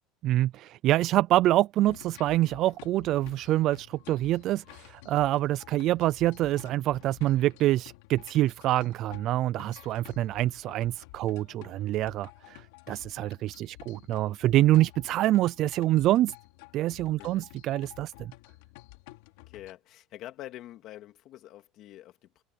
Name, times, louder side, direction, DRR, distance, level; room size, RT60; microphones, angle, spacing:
voice 1, 0.2-16.3 16.7-18.3, right 15 dB, 45° right, 0.4 m, -26 dB
sound 1, 1.9-19.7, left 20 dB, 85° left, 3.4 m, -51 dB
voice 2, 17.2-17.5 19.5-22.4, left 14 dB, 45° left, 2.3 m, -46 dB
cardioid pair, 165°, 0 cm